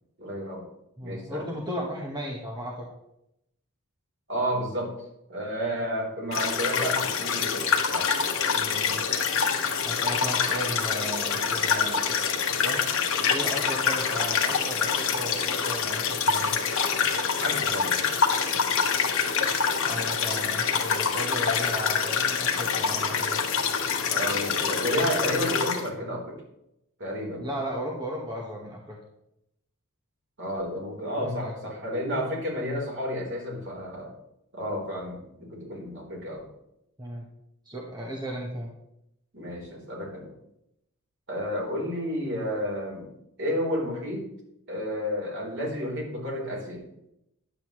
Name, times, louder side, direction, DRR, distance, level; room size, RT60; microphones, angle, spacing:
voice 1, 0.2-0.6 1.0-1.5 4.3-4.9 5.3-7.7 7.9-8.1 9.6-9.7 17.4-18.0 24.1-26.4 27.0-27.5 30.4-34.1 34.5-36.5 39.3-40.3 41.3-43.1 43.4-44.2 44.7-46.8, equal, 55° right, -3 dB, 3.6 m, -31 dB
voice 2, 1.0-2.9 8.5-9.2 9.8-12.1 12.6-12.9 13.3-16.6 19.9-23.4 27.4-29.0 31.1-31.5 37.0-37.3 37.6-38.7, equal, 20° right, -2 dB, 1.1 m, -35 dB
sound 1, 6.3-25.9, left 6 dB, 65° left, 1.1 m, -26 dB
10.5 x 7.9 x 3.0 m, 0.81 s
head